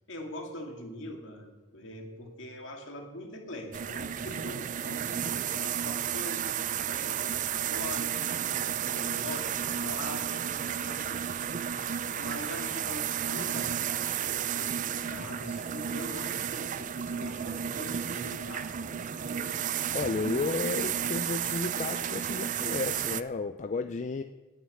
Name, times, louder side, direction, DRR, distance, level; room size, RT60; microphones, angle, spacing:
voice 1, 0.1-11.4 11.7-13.8 14.1-19.5, left 1 dB, 60° left, 2 dB, 2.3 m, -43 dB
sound 1, 3.7-23.2, right 9 dB, 40° right, 0.4 m, -32 dB
voice 2, 19.9-24.2, left 4 dB, 35° left, 9 dB, 0.4 m, -32 dB
9.6 x 9.5 x 8.9 m, 1.3 s
head